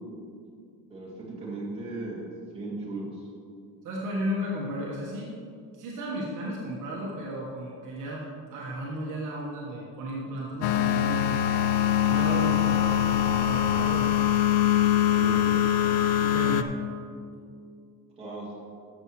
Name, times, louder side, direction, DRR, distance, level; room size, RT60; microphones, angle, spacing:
voice 1, 0.9-2.2 2.5-3.2 15.1-15.5 18.2-18.5, right 2 dB, 15° right, -6 dB, 2.3 m, -36 dB
voice 2, 3.8-5.3 5.7-11.4 12.1-14.1 16.2-16.7, equal, 45° right, -4 dB, 1.3 m, -34 dB
sound 1, 10.6-16.6, left 10 dB, 90° left, 0.6 m, -23 dB
13.5 x 7.0 x 3.1 m, 2.4 s
cardioid pair, 155°, 42 cm